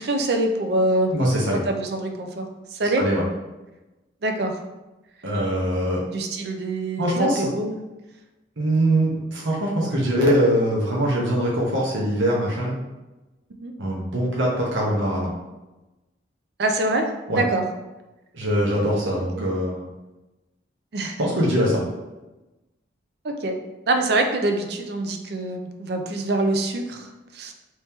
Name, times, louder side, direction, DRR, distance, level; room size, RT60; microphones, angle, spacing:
voice 1, 0.0-1.1 1.5-2.5 2.7-3.0 4.2-4.6 6.1-7.8 13.6-13.7 16.6-17.1 17.3-17.6 19.3-19.4 20.9-21.2 23.2-23.6 23.9-27.1 27.3-27.5, right 2 dB, 60° right, 4 dB, 0.4 m, -24 dB
voice 2, 1.1-1.6 3.0-3.2 5.2-6.0 7.0-7.5 8.6-12.8 13.8-15.3 17.3-17.4 18.3-19.9 21.2-21.8, equal, 85° right, -4 dB, 0.9 m, -22 dB
3.0 x 2.8 x 3.4 m, 1.1 s
head